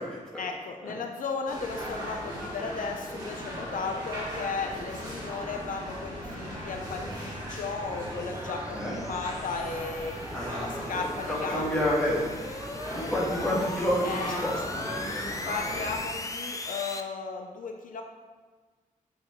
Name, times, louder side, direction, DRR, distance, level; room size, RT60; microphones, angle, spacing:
voice 1, 0.4-10.2 10.6-11.7 14.0-14.5 15.4-18.0, left 4 dB, 70° left, 3 dB, 0.6 m, -35 dB
sound 1, 1.5-16.0, equal, 25° right, 2.0 m, -38 dB
sound 2, 5.9-17.0, left 2 dB, 25° left, 0.4 m, -40 dB
voice 2, 10.3-12.3 12.9-14.9, equal, 5° left, -7 dB, 1.9 m, -29 dB
8.7 x 5.9 x 3.2 m, 1.4 s
wide cardioid pair, 170°, 14 cm